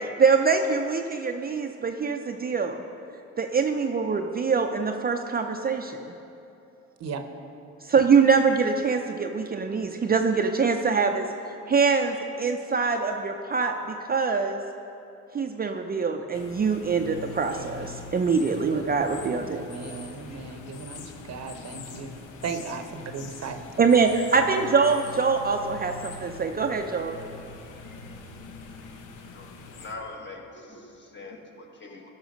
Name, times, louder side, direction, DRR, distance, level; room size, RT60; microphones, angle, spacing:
voice 1, 0.0-2.8 3.4-6.1 7.8-11.3 11.7-13.8 14.0-14.6 15.3-19.6 23.8-27.2, right 5 dB, 30° right, 4 dB, 0.5 m, -24 dB
sound 1, 16.3-30.0, left 4 dB, 85° left, 0.9 m, -43 dB
voice 2, 17.5-18.0 19.3-22.1 22.4-23.6, right 5 dB, 60° right, 7 dB, 0.8 m, -37 dB
voice 3, 29.3-32.1, left 3 dB, 40° left, 1 dB, 1.5 m, -42 dB
13.0 x 5.6 x 5.2 m, 2.9 s
cardioid pair, 90°, 30 cm